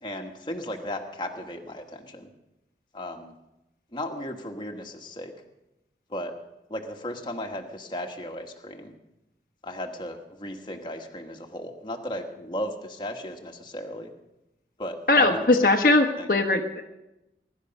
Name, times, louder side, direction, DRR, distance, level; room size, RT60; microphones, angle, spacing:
voice 1, 0.0-2.3 2.9-3.3 3.9-5.3 6.1-6.3 6.7-8.9 9.6-14.1 14.8-15.4 16.2-16.3, left 1 dB, 25° left, 3 dB, 1.6 m, -35 dB
voice 2, 15.1-16.8, left 2 dB, 50° left, 3 dB, 1.1 m, -20 dB
22.0 x 12.0 x 5.4 m, 0.94 s
head